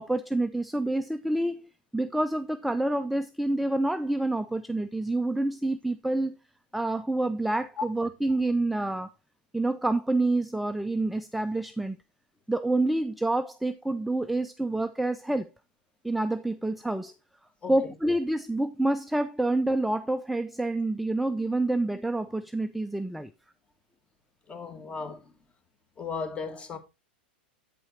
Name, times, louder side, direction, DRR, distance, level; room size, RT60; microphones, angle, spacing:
voice 1, 0.0-6.4 6.7-9.1 9.5-12.0 12.5-15.5 16.0-17.1 17.7-23.3, right 2 dB, ahead, 0.5 m, -28 dB
voice 2, 24.5-25.3 26.0-26.8, left 4 dB, 20° left, 1.9 m, -35 dB
8.4 x 5.6 x 4.1 m
hypercardioid pair, 95°, 5 cm